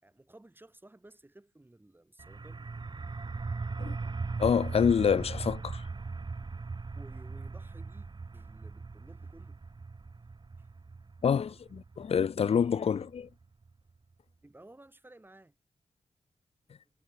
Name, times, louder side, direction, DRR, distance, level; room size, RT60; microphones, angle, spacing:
voice 1, 0.0-2.7 6.9-9.6 10.6-10.7 14.4-15.6 16.7-16.9, right 1 dB, 15° right, 4.1 m, -56 dB
sound 1, 2.2-13.7, right 4 dB, 35° right, 1.9 m, -39 dB
voice 2, 4.4-5.9 11.2-13.3, left 7 dB, 50° left, 0.5 m, -27 dB
wide cardioid pair, 95°, 13 cm